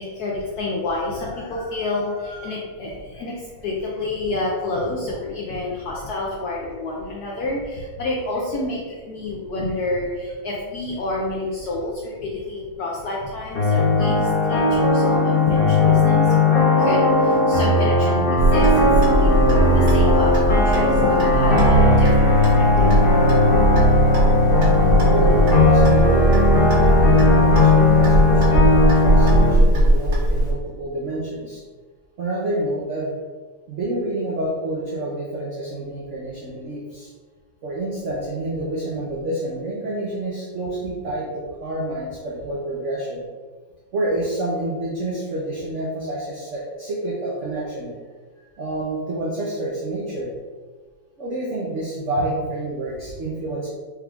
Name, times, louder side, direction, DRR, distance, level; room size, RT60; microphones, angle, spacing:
voice 1, 0.0-22.9, left 2 dB, 75° left, -3 dB, 0.9 m, -29 dB
sound 1, 13.6-29.5, left 2 dB, 50° left, 0.7 m, -17 dB
Clock, 18.4-30.5, right 1 dB, 55° right, 0.9 m, -20 dB
voice 2, 25.6-26.3 26.7-31.6 32.2-33.2 33.7-37.1 37.6-41.3 41.6-43.2 43.9-47.9 48.6-50.3 51.2-53.7, right 1 dB, 80° right, -4 dB, 0.6 m, -28 dB
4.8 x 2.3 x 3.5 m, 1.5 s
omnidirectional pair, 2.2 m